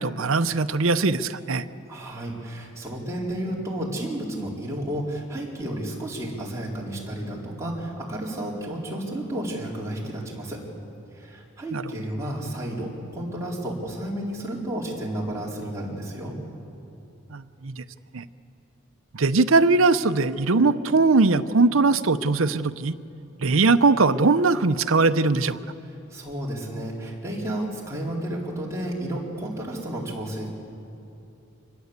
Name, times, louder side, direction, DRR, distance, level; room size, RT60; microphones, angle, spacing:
voice 1, 0.0-1.6 11.7-11.8 17.3-17.8 18.1-18.2 19.1-22.9 23.4-25.6, right 3 dB, 75° right, 11 dB, 0.8 m, -20 dB
voice 2, 1.9-10.6 11.1-16.4 26.1-30.5, right 1 dB, 15° right, -4 dB, 4.2 m, -32 dB
25.5 x 20.5 x 8.2 m, 2.7 s
head